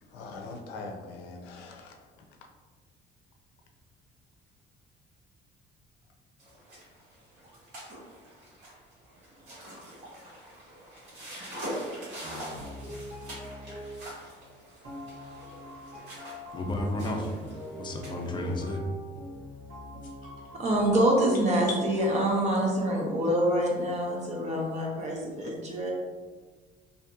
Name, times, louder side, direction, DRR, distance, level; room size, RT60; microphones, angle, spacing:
voice 1, 0.0-2.5 11.2-11.3, left 3 dB, 90° left, 3 dB, 0.4 m, -43 dB
sound 1, 6.4-18.7, right 1 dB, 85° right, 1.4 m, -44 dB
sound 2, 12.2-14.4 14.8-21.0, equal, 65° right, 1.2 m, -43 dB
voice 2, 16.5-18.8, left 1 dB, 25° left, 2 dB, 0.4 m, -32 dB
sound 3, 20.0-21.9, left 3 dB, 50° left, 0.8 m, -42 dB
voice 3, 20.5-25.9, right 1 dB, 40° right, -1 dB, 0.7 m, -26 dB
2.7 x 2.6 x 2.3 m, 1.4 s
cardioid pair, 110°, 17 cm